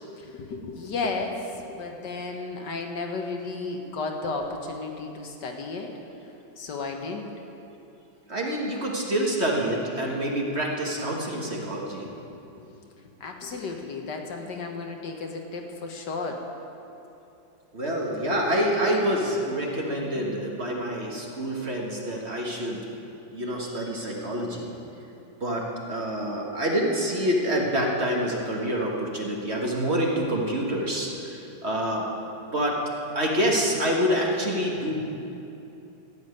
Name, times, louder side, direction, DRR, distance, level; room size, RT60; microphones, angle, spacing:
voice 1, 0.2-5.9 6.6-7.3 12.5-12.9 13.2-16.4 20.1-20.5, left 3 dB, 65° left, 3 dB, 1.7 m, -33 dB
voice 2, 8.3-12.1 17.7-22.9 23.3-24.7 25.4-32.0 32.5-32.8 33.2-35.0, equal, 35° right, -2 dB, 1.7 m, -27 dB
14.5 x 7.2 x 9.5 m, 2.8 s
omnidirectional pair, 2.1 m